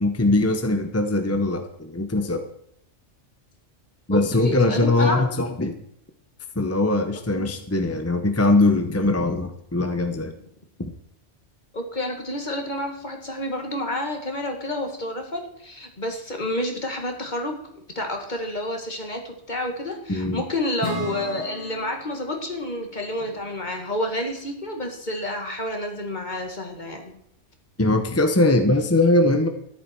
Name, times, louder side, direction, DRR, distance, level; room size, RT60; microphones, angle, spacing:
voice 1, 0.0-2.4 4.1-5.8 6.6-10.3 10.8-10.9 20.1-20.4 27.8-29.5, left 2 dB, 15° left, 6 dB, 0.7 m, -21 dB
voice 2, 4.1-5.3 7.3-7.5 11.7-27.1, left 1 dB, 40° left, 3 dB, 2.1 m, -29 dB
Acoustic guitar / Strum, 20.8-24.3, equal, 60° left, 7.1 m, -37 dB
13.0 x 11.0 x 4.6 m, 0.75 s
omnidirectional pair, 1.2 m